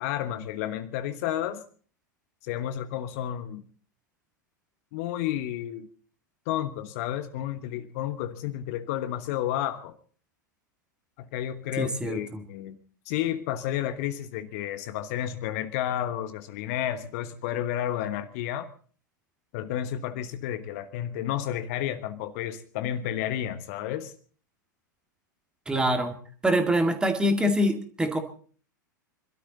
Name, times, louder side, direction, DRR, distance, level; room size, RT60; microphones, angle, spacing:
voice 1, 0.0-1.6 2.4-3.6 4.9-5.9 6.5-10.0 11.2-12.7 13.0-18.7 19.5-24.1, left 11 dB, 50° left, 12 dB, 1.2 m, -31 dB
voice 2, 11.8-12.4 25.7-26.2 26.4-28.2, equal, 10° right, 7 dB, 2.1 m, -25 dB
26.0 x 13.0 x 4.1 m, 0.43 s
figure-of-eight pair, 95°, 11 cm